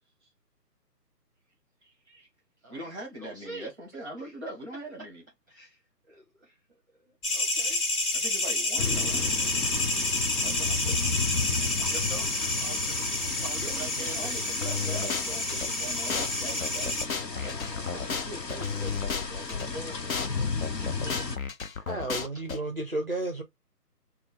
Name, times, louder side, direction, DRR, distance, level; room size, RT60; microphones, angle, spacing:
voice 1, 1.8-2.3 2.7-5.2 8.1-9.4 10.4-11.0 13.6-17.0 17.4-17.5 17.9-21.2, right 1 dB, 5° left, 1.1 m, -42 dB
voice 2, 2.6-3.7 5.5-5.8 6.1-6.6 7.3-7.8 11.9-14.5 17.3-18.1, right 1 dB, 10° right, 0.7 m, -45 dB
sound 1, 7.2-17.0, left 2 dB, 35° left, 1.8 m, -29 dB
sound 2, 8.8-21.4, left 4 dB, 85° left, 1.0 m, -34 dB
sound 3, 14.6-15.7 16.1-16.3 16.6-19.7 20.1-20.3 20.6-22.6, left 5 dB, 60° left, 0.7 m, -33 dB
voice 3, 21.9-23.4, right 2 dB, 40° right, 0.4 m, -32 dB
4.1 x 2.3 x 3.5 m
figure-of-eight pair, 150°, 48 cm